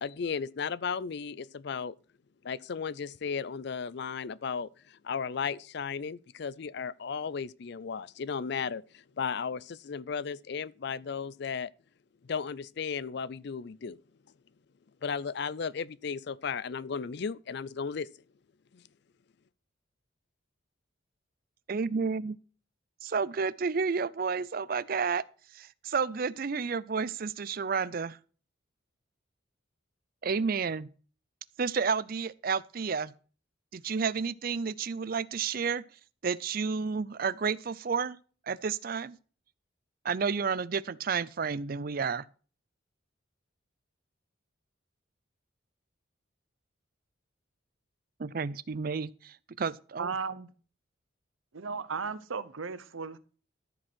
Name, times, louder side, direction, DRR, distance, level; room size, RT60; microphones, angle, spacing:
voice 1, 0.0-1.9 2.4-11.7 12.2-14.0 15.0-18.1 18.7-18.8, left 6 dB, 55° left, 0.4 m, -35 dB
voice 2, 21.7-22.4 23.0-25.2 25.5-28.2 30.2-30.9 31.6-33.1 33.7-35.8 36.2-38.2 38.5-39.2 40.0-42.2 48.2-50.1, right 5 dB, 45° right, 0.4 m, -31 dB
voice 3, 50.0-50.5 51.5-53.2, right 5 dB, 80° right, 0.8 m, -35 dB
13.5 x 5.3 x 6.1 m
head